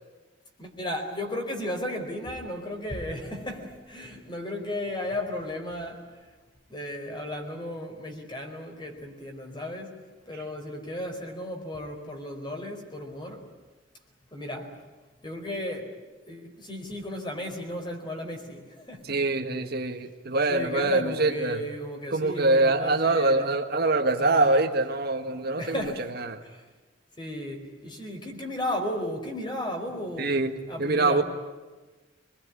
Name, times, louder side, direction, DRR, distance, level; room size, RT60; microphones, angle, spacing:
voice 1, 0.6-6.1 6.7-10.0 10.3-13.5 14.3-14.7 15.2-15.9 16.3-19.2 20.5-23.6 24.2-24.6 25.6-26.1 26.4-26.7 27.2-30.4 30.7-31.2, left 1 dB, 25° left, 3 dB, 4.6 m, -35 dB
voice 2, 19.0-21.7 22.1-25.9 26.2-26.4 30.2-30.5 30.8-31.2, right 2 dB, 55° right, 5 dB, 1.7 m, -24 dB
26.0 x 22.0 x 9.8 m, 1.3 s
head